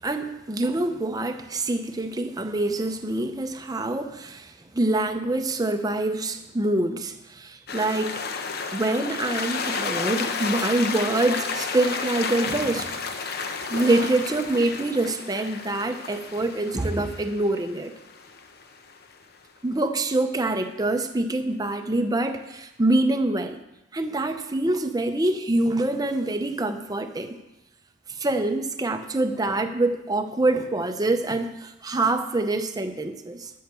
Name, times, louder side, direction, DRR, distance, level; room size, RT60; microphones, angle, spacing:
voice 1, 0.0-8.2 8.7-13.3 13.7-17.9 19.6-23.6 23.9-27.4 28.1-33.5, right 2 dB, 20° right, 7 dB, 0.7 m, -25 dB
sound 1, 7.7-19.1, left 5 dB, 50° left, 0.9 m, -32 dB
12.5 x 6.6 x 6.8 m, 0.93 s
head